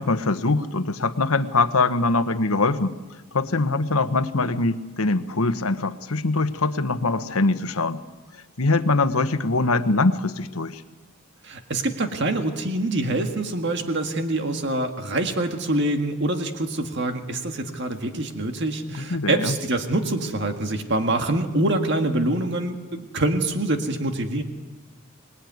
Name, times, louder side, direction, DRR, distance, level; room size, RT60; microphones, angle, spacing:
voice 1, 0.0-2.9 3.3-8.0 8.6-10.8 18.9-19.5, left 3 dB, 85° left, 10 dB, 1.2 m, -23 dB
voice 2, 11.4-24.4, right 2 dB, 55° right, 5 dB, 1.8 m, -25 dB
25.5 x 19.5 x 9.5 m, 1.2 s
head